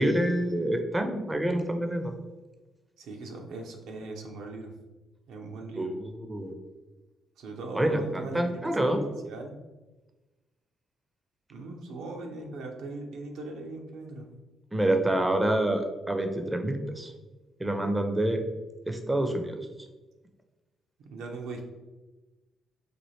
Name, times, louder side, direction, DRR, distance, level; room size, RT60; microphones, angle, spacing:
voice 1, 0.0-2.1 5.8-6.6 7.7-9.1 14.7-17.1 17.6-18.4 18.9-19.6, right 1 dB, 15° right, 6 dB, 0.4 m, -27 dB
voice 2, 3.0-4.7 5.3-5.9 7.4-8.8 9.2-9.5 11.5-14.3 19.1-19.4 21.1-21.6, right 3 dB, 85° right, 2 dB, 0.6 m, -39 dB
4.2 x 2.4 x 3.1 m, 1.1 s
cardioid pair, 85°, 0 cm